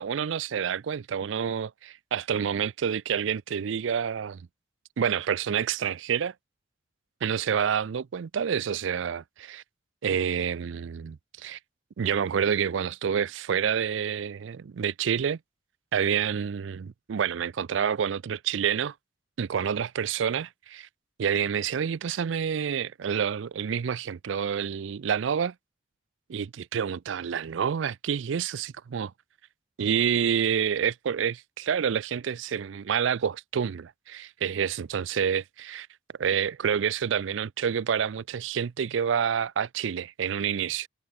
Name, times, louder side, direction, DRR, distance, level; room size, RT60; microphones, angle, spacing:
voice 1, 0.0-4.4 5.0-6.3 7.2-9.6 10.0-11.6 12.0-15.4 15.9-18.9 19.4-20.9 21.2-25.5 26.3-29.1 29.8-35.9 36.2-40.9, right 7 dB, 80° right, 0.4 m, -28 dB
head